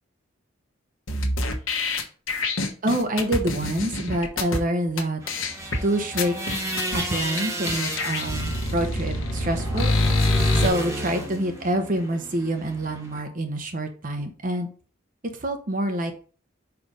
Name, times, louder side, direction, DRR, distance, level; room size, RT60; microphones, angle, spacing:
sound 1, 1.1-4.6 5.0-5.1 5.3-5.8 6.2-7.0 7.4-7.5 7.7-10.7, left 2 dB, 75° left, 1.2 m, -25 dB
voice 1, 2.8-5.2 5.8-6.4 6.9-9.9 10.5-14.7 15.3-16.1, right 1 dB, 40° right, 5 dB, 0.9 m, -26 dB
sound 2, 5.2-13.2, right 1 dB, 15° right, 1.4 m, -33 dB
5.1 x 4.7 x 4.9 m, 0.40 s
head